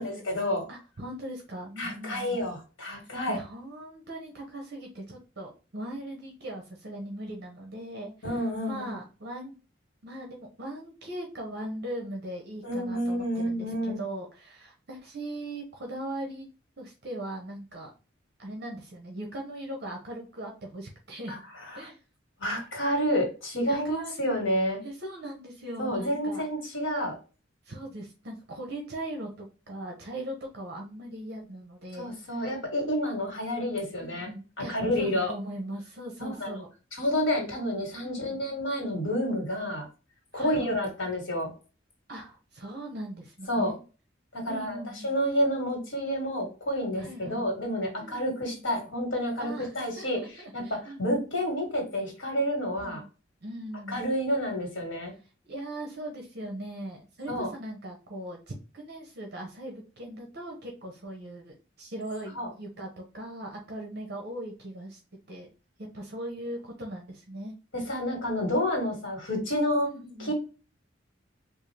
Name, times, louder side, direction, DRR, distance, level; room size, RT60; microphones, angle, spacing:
voice 1, 0.0-0.6 1.8-3.4 8.2-8.8 12.6-14.0 21.3-21.4 21.7-21.9 22.4-24.8 25.8-27.2 32.0-34.3 34.6-35.3 36.2-36.5 37.0-39.8 40.3-41.5 43.5-43.7 44.3-44.8 45.0-50.2 50.5-53.0 53.9-55.1 57.3-57.5 62.3-62.5 67.7-69.9 70.2-70.3, equal, 85° left, 2 dB, 1.4 m, -29 dB
voice 2, 0.7-2.4 3.0-9.5 10.0-16.5 16.8-17.9 18.4-21.4 21.7-22.0 23.7-24.4 24.8-26.4 27.6-32.5 34.0-36.7 38.0-38.4 40.3-40.9 42.1-43.8 44.5-45.1 47.0-47.4 48.0-48.7 49.4-51.2 52.8-53.1 53.4-54.1 55.4-65.0 65.3-65.5 65.8-67.5 69.8-70.3, right 1 dB, 55° right, 1 dB, 0.8 m, -39 dB
3.6 x 2.4 x 3.2 m, 0.34 s
head